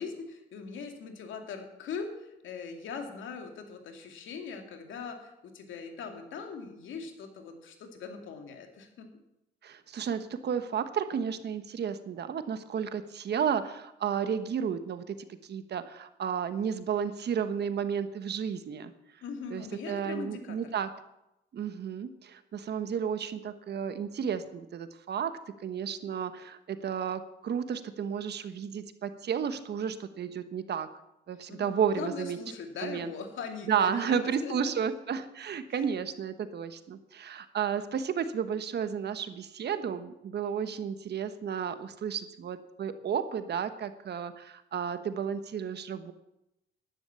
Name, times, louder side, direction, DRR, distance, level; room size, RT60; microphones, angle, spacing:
voice 1, 0.0-9.1 19.2-20.7 31.5-34.9 35.7-35.8, left 5 dB, 75° left, 4 dB, 2.5 m, -41 dB
voice 2, 9.6-15.2 15.5-18.9 19.5-20.9 21.5-30.9 31.3-32.4 32.8-33.1 33.7-46.1, right 7 dB, 55° right, 11 dB, 1.2 m, -32 dB
11.0 x 11.0 x 7.0 m, 0.87 s
cardioid pair, 90°, 20 cm